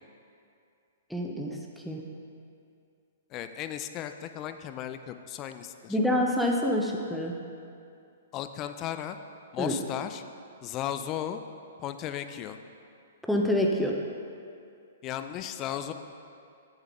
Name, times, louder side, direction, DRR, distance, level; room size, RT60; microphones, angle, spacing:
voice 1, 1.1-1.6 1.8-2.0 5.9-7.3 9.6-9.7 13.3-13.9, left 1 dB, ahead, 0 dB, 0.8 m, -26 dB
voice 2, 3.3-6.0 8.3-9.2 9.5-10.2 10.6-11.4 11.8-12.6 15.0-15.9, left 10 dB, 30° left, 9 dB, 0.4 m, -35 dB
8.1 x 7.0 x 3.7 m, 2.4 s
hypercardioid pair, 125°, 0 cm